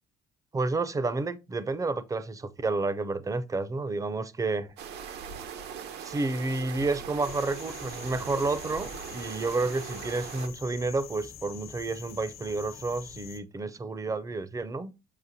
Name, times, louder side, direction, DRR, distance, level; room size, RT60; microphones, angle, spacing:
voice 1, 0.5-4.7 6.0-14.9, right 3 dB, 20° right, 0.5 m, -30 dB
sound 1, 4.8-10.5, right 7 dB, 80° right, 1.0 m, -40 dB
sound 2, 7.2-13.4, left 8 dB, 65° left, 1.1 m, -46 dB
6.6 x 5.4 x 2.7 m
cardioid pair, 110°, 17 cm